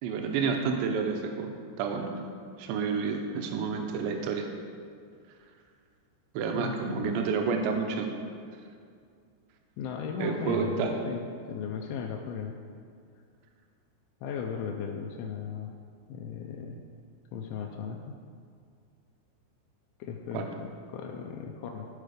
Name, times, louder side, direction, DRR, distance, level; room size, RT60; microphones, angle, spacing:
voice 1, 0.0-1.5 1.8-2.2 2.6-4.5 6.3-8.1 10.2-11.0 20.3-20.5, right 5 dB, 85° right, 4 dB, 2.6 m, -29 dB
voice 2, 6.6-7.1 9.8-12.5 14.2-15.7 16.1-16.8 17.3-18.1 20.0-21.9, left 6 dB, 90° left, 1 dB, 2.6 m, -37 dB
14.0 x 4.6 x 5.0 m, 2.3 s
omnidirectional pair, 5.8 m